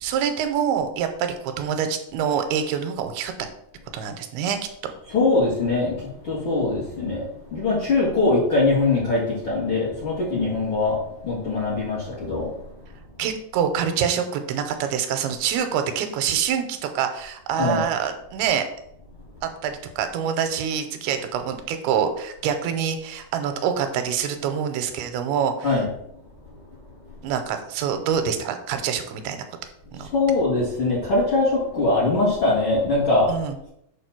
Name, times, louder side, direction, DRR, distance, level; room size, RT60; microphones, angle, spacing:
voice 1, 0.0-3.3 3.9-4.6 13.2-18.6 19.4-25.8 27.2-29.4 29.9-30.1 33.3-33.6, right 8 dB, 90° right, 7 dB, 2.6 m, -26 dB
voice 2, 5.1-12.6 17.5-17.8 25.6-25.9 30.0-33.3, left 3 dB, 45° left, -8 dB, 1.8 m, -22 dB
6.7 x 3.0 x 5.8 m, 0.76 s
omnidirectional pair, 4.5 m